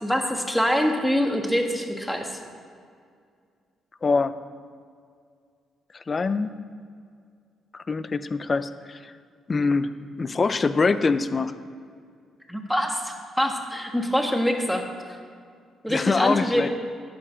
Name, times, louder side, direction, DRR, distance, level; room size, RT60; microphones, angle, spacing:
voice 1, 0.0-2.3 12.5-14.9 15.8-16.6, equal, ahead, 3 dB, 1.4 m, -24 dB
voice 2, 4.0-4.4 5.9-6.5 7.7-9.1 9.5-11.6 15.9-16.7, left 4 dB, 35° left, 13 dB, 0.5 m, -24 dB
11.0 x 7.8 x 5.1 m, 2.1 s
cardioid pair, 90°, 0 cm